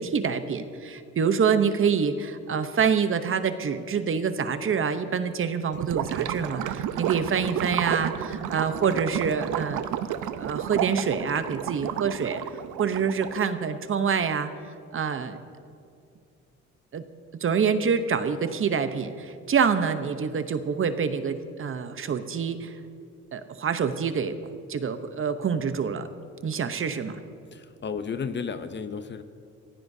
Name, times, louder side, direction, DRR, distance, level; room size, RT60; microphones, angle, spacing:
voice 1, 0.0-9.8 10.4-12.4 12.8-14.5 14.9-15.4 16.9-17.0 17.4-22.8 23.3-24.4 24.7-26.1 26.4-27.2, right 6 dB, 45° right, 10 dB, 0.9 m, -26 dB
Gurgling / Liquid, 5.7-13.5, right 10 dB, 80° right, 0.7 m, -31 dB
voice 2, 27.5-29.2, left 6 dB, 35° left, 11 dB, 0.7 m, -33 dB
23.0 x 15.5 x 2.7 m, 2.4 s
cardioid pair, 90°, 30 cm